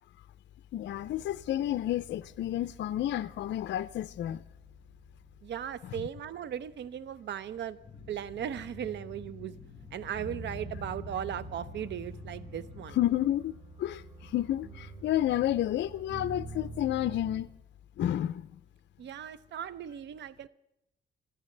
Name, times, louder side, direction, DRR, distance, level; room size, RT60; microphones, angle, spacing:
voice 1, 0.7-4.4 13.0-17.5 18.0-18.5, left 12 dB, 65° left, 0.5 m, -30 dB
sound 1, 0.8-17.4, right 2 dB, 20° right, 4.9 m, -48 dB
voice 2, 5.4-7.8 8.1-9.5 9.9-13.0 19.0-20.5, right 9 dB, 65° right, 0.7 m, -37 dB
sound 2, 7.8-13.1, left 3 dB, 15° left, 7.4 m, -48 dB
27.0 x 14.5 x 3.3 m
cardioid pair, 90°, 20 cm